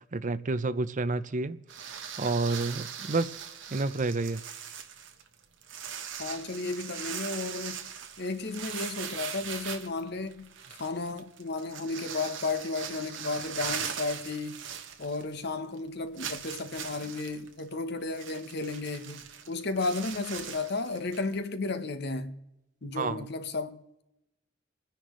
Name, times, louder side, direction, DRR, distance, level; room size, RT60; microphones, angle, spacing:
voice 1, 0.1-1.6 2.2-3.4 3.7-4.4 22.9-23.3, right 3 dB, 40° right, 0.6 m, -29 dB
sound 1, 1.7-15.5 15.7-15.8 16.2-21.3, right 8 dB, 60° right, 1.2 m, -40 dB
voice 2, 6.2-7.9 8.2-14.6 15.0-22.4 22.8-24.0, left 3 dB, 55° left, 1.0 m, -34 dB
27.5 x 10.0 x 3.1 m
head